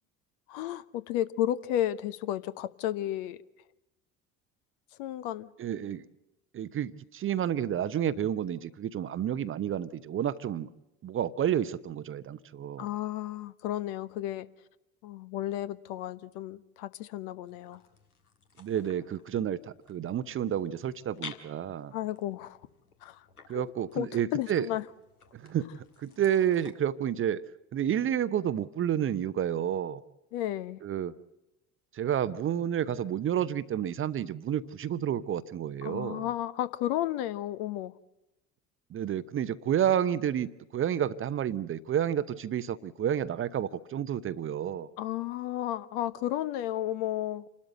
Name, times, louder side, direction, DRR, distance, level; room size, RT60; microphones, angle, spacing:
voice 1, 0.5-3.4 5.0-5.5 12.8-14.5 15.0-17.8 21.9-22.6 23.0-24.8 30.3-30.8 35.8-37.9 45.0-47.5, left 13 dB, 55° left, 0.9 m, -33 dB
voice 2, 5.6-6.1 6.5-10.7 11.0-12.9 18.6-21.9 23.5-24.7 25.3-25.7 26.0-27.4 27.7-30.0 30.8-31.1 31.9-36.3 38.9-44.9, right 10 dB, 30° right, 0.8 m, -30 dB
sound 1, 17.5-26.7, left 5 dB, 80° left, 1.7 m, -52 dB
28.0 x 12.5 x 7.7 m
figure-of-eight pair, 65°, 45 cm